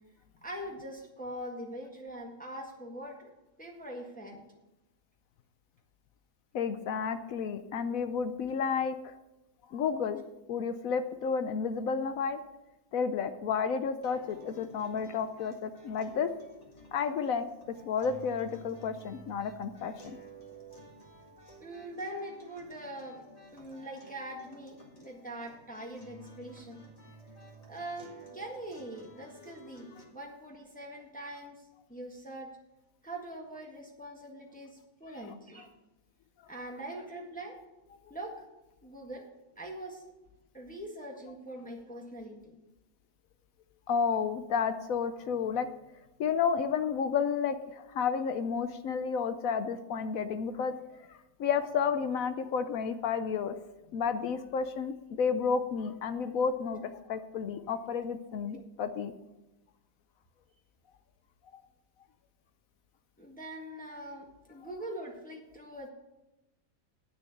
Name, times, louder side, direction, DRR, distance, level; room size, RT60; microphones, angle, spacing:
voice 1, 0.4-3.3 3.6-4.4 21.6-23.2 23.5-26.8 27.7-32.5 33.0-35.7 36.5-37.6 38.1-38.3 38.8-39.2 39.6-40.0 40.5-42.5 63.2-65.9, right 1 dB, 5° left, 0 dB, 1.4 m, -43 dB
voice 2, 6.5-9.1 9.7-10.2 10.5-12.4 12.9-16.3 16.9-17.5 17.8-20.2 38.1-38.2 43.9-45.7 46.2-53.6 53.9-59.1 61.5-61.6, left 6 dB, 65° left, 11 dB, 1.0 m, -31 dB
sound 1, 14.0-30.0, right 2 dB, 25° left, 1.9 m, -53 dB
9.3 x 6.3 x 8.0 m, 0.99 s
omnidirectional pair, 1.7 m